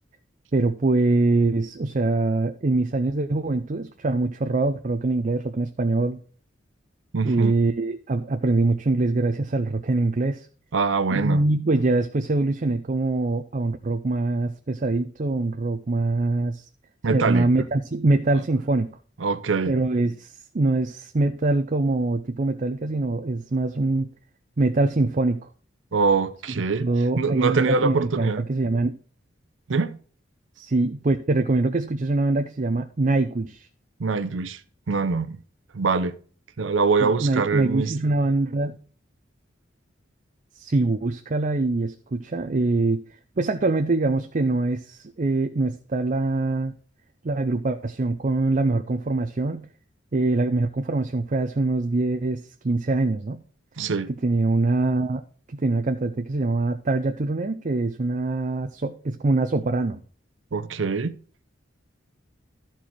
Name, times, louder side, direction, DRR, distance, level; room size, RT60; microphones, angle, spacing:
voice 1, 0.5-6.2 7.2-10.4 11.1-16.6 17.1-18.9 19.7-24.1 24.6-25.5 26.8-29.0 30.6-33.7 37.0-38.8 40.6-43.0 43.4-46.7 47.2-49.7 50.1-53.4 54.1-55.2 55.5-60.0, right 2 dB, 40° right, 0.5 m, -24 dB
voice 2, 7.1-7.6 10.7-11.4 17.0-17.5 19.2-19.7 25.9-26.9 27.2-28.4 29.7-30.0 34.0-34.6 34.9-35.4 35.7-36.1 36.6-37.9 53.8-54.1 60.5-61.1, right 4 dB, 80° right, 0.6 m, -23 dB
13.0 x 4.5 x 4.4 m
head